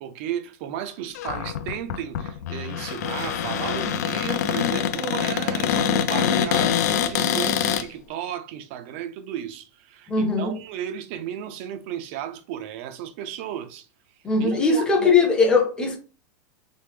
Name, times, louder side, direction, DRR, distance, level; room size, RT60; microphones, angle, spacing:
voice 1, 0.0-13.9 14.4-15.1, right 10 dB, 45° right, 0.3 m, -34 dB
Cupboard open or close, 1.1-7.8, left 9 dB, 75° left, 0.4 m, -25 dB
voice 2, 10.1-10.5 14.2-16.0, left 4 dB, 10° left, 0.6 m, -20 dB
3.2 x 2.0 x 3.3 m
supercardioid pair, 165°, 9 cm